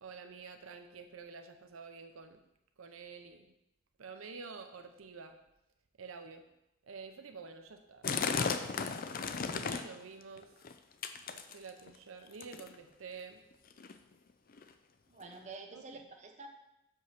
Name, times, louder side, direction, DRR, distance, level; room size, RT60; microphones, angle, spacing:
voice 1, 0.0-2.4 2.8-3.5 4.0-5.3 6.0-6.4 6.8-8.7 9.5-10.5 11.3-13.4 15.7-16.0, right 5 dB, 90° right, 6 dB, 0.7 m, -49 dB
sound 1, 8.0-10.0 10.4-10.7 11.0-11.9 12.4-12.7 13.5-13.6 13.8-13.9 14.5-14.6 15.3-15.4, left 5 dB, 45° left, 0.5 m, -35 dB
voice 2, 15.1-16.5, right 3 dB, 35° right, 3 dB, 0.9 m, -48 dB
6.4 x 5.4 x 5.7 m, 0.87 s
head